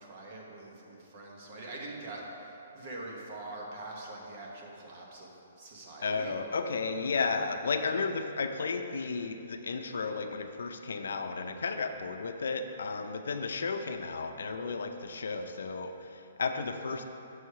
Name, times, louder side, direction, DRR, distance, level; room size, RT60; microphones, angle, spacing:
voice 1, 0.0-6.3, right 2 dB, 30° right, -2 dB, 0.9 m, -44 dB
voice 2, 6.0-17.0, left 4 dB, 85° left, 7 dB, 0.5 m, -33 dB
6.2 x 4.8 x 5.5 m, 2.8 s
hypercardioid pair, 180°, 0 cm